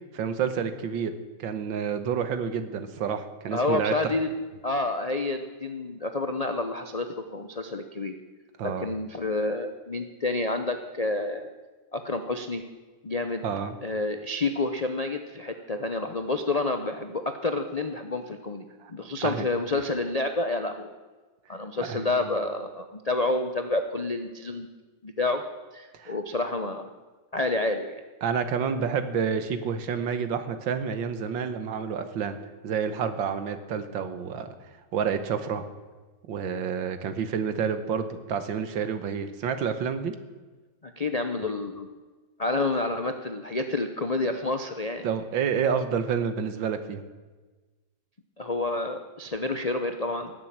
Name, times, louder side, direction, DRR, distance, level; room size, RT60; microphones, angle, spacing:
voice 1, 0.1-1.1 1.4-3.9 8.6-8.9 13.4-13.8 18.8-18.9 19.2-19.5 21.9-22.1 25.9-26.2 28.2-32.4 32.6-34.5 34.9-35.6 36.3-40.2 45.0-47.0, right 7 dB, 80° right, 10 dB, 1.9 m, -29 dB
voice 2, 3.5-4.3 4.6-8.2 8.6-11.5 11.9-12.6 13.0-13.4 13.8-18.6 18.9-20.9 21.5-24.7 25.0-25.4 25.7-26.9 27.3-28.0 40.8-41.9 42.4-45.1 48.4-50.3, left 2 dB, 85° left, 6 dB, 0.3 m, -29 dB
18.0 x 7.6 x 8.6 m, 1.3 s
omnidirectional pair, 2.1 m